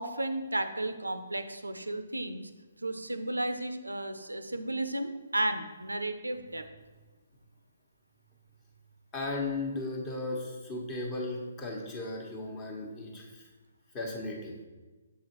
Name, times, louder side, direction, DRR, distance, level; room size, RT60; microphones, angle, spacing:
voice 1, 0.0-2.5 2.8-6.7, right 1 dB, 85° right, 10 dB, 0.5 m, -33 dB
voice 2, 9.1-13.4 13.9-14.6, left 2 dB, 20° left, 0 dB, 1.1 m, -36 dB
6.9 x 4.8 x 3.0 m, 1.3 s
figure-of-eight pair, 135°, 0 cm